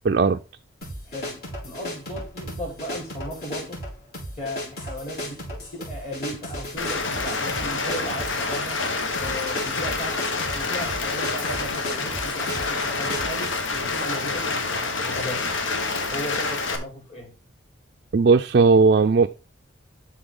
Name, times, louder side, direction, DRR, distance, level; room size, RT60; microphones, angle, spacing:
voice 1, 0.0-0.4 18.1-19.3, right 4 dB, 50° right, 0.4 m, -17 dB
sound 1, 0.8-14.1, left 1 dB, 50° left, 4.2 m, -35 dB
voice 2, 1.1-3.8 4.4-8.8 9.2-15.5 16.1-17.3, equal, 35° left, 4.1 m, -36 dB
Rain, 6.8-16.8, left 3 dB, 80° left, 1.4 m, -27 dB
12.0 x 4.3 x 3.8 m
head